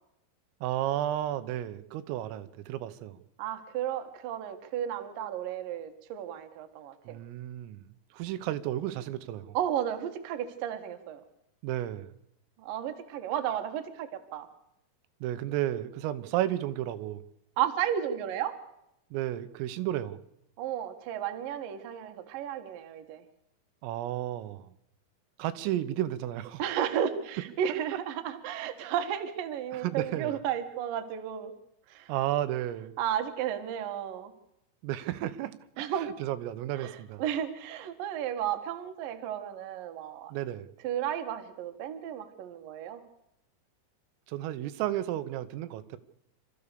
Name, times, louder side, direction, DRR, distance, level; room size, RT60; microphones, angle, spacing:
voice 1, 0.6-3.2 7.1-9.6 11.6-12.1 15.2-17.2 19.1-20.2 23.8-24.7 25.4-26.6 29.7-30.4 32.1-32.9 34.8-35.6 36.0-37.2 40.3-40.7 44.3-46.0, right 13 dB, 85° right, 12 dB, 3.6 m, -33 dB
voice 2, 3.4-7.2 9.5-11.2 12.6-14.5 17.6-18.5 20.6-23.2 26.6-31.5 31.9-32.1 33.0-34.3 35.8-36.1 36.8-40.3 40.8-43.0, right 10 dB, 60° right, 7 dB, 2.6 m, -33 dB
27.5 x 14.0 x 6.8 m, 0.82 s
omnidirectional pair, 5.9 m